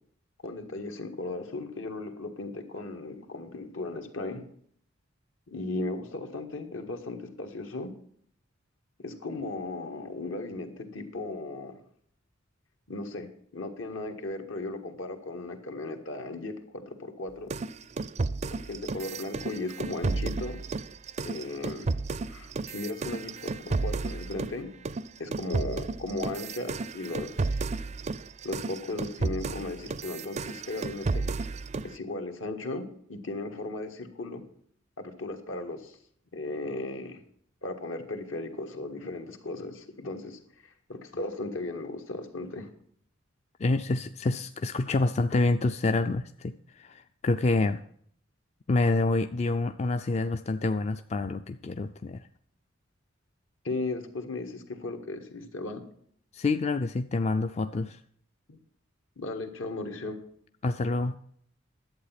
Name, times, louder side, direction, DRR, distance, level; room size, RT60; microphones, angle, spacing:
voice 1, 0.4-4.4 5.5-7.9 9.0-11.7 12.9-13.3 13.5-17.5 18.4-20.6 21.2-21.9 22.3-24.7 25.2-27.5 28.4-31.2 31.8-34.4 35.0-36.0 36.3-37.2 37.6-42.7 53.6-55.8 58.5-58.6 59.2-60.2, left 2 dB, 75° left, 6 dB, 1.7 m, -36 dB
sound 1, 17.5-24.6 24.8-31.9, right 3 dB, 35° right, 0.4 m, -32 dB
voice 2, 43.6-47.8 48.7-52.2 56.3-58.0 60.6-61.2, left 3 dB, 35° left, 9 dB, 0.4 m, -27 dB
11.5 x 8.2 x 5.8 m, 0.64 s
head